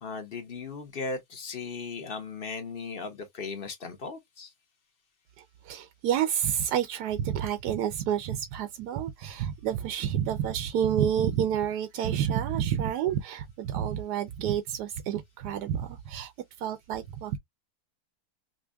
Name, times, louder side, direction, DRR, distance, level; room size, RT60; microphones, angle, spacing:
voice 1, 0.0-4.5, left 4 dB, 45° left, 0.9 m, -37 dB
voice 2, 5.4-16.3 16.6-17.4, right 9 dB, 85° right, 1.2 m, -29 dB
5.2 x 2.1 x 2.3 m
omnidirectional pair, 1.7 m